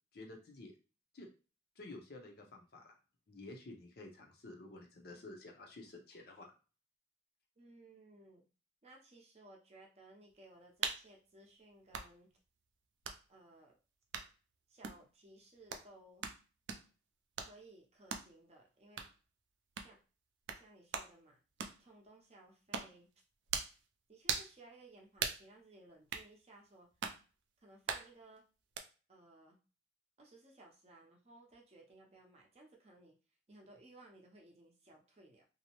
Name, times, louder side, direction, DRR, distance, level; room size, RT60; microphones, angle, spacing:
voice 1, 0.1-0.7 1.1-1.3 1.8-2.9 3.3-6.5, left 2 dB, 55° left, 1 dB, 0.6 m, -51 dB
voice 2, 7.6-8.4 8.8-12.3 13.3-13.8 14.7-16.2 17.4-19.0 19.8-20.0 20.5-21.4 21.8-23.1 24.1-26.9 27.6-28.5 29.1-29.6 30.2-33.2 33.5-35.4, right 2 dB, 35° right, 0 dB, 0.6 m, -60 dB
sound 1, 10.8-11.0 11.9-12.1 13.0-13.2 14.1-14.3 14.8-15.0 15.7-15.9 16.2-16.4 16.7-16.9 17.4-17.5 18.1-18.3 19.0-19.1 19.8-19.9 20.5-20.6 20.9-21.1 21.6-21.8 22.7-23.0 23.5-23.8 24.3-24.5 25.2-25.4 26.1-26.3 27.0-27.2 27.9-28.1 28.8-28.9, right 6 dB, 75° right, 0.4 m, -39 dB
2.6 x 2.0 x 2.9 m, 0.34 s
head